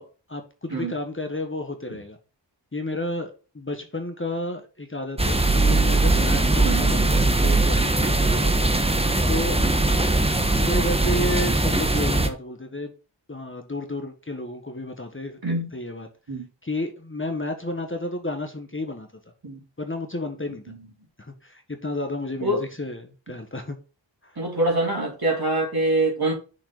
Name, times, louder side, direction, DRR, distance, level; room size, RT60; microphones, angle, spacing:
voice 1, 0.0-2.2 2.7-8.6 9.3-9.7 10.5-12.9 13.3-15.4 15.7-16.1 16.6-19.1 19.8-20.7 21.2-23.8 24.2-24.4, left 2 dB, 25° left, 1.5 m, -32 dB
sound 1, 5.2-12.3, right 2 dB, 15° right, 1.2 m, -20 dB
voice 2, 24.4-26.3, right 2 dB, 50° right, 3.4 m, -24 dB
6.6 x 5.9 x 3.9 m
wide cardioid pair, 60°, 46 cm